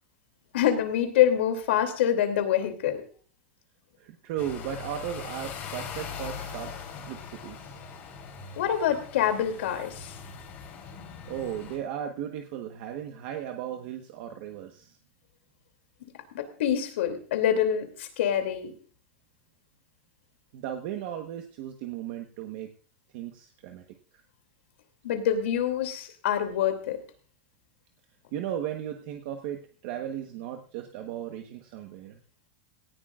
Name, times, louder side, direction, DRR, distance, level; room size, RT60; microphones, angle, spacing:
voice 1, 0.5-3.0 8.6-10.1 16.3-18.7 25.0-27.0, left 10 dB, 70° left, 6 dB, 2.8 m, -26 dB
voice 2, 4.0-6.7 7.0-7.7 11.3-15.0 20.5-22.7 23.1-23.8 28.3-32.2, right 10 dB, 40° right, 4 dB, 1.2 m, -36 dB
sound 1, 4.4-11.8, left 6 dB, 30° left, 3.7 m, -41 dB
18.0 x 14.5 x 2.5 m, 0.41 s
supercardioid pair, 180°, 7 cm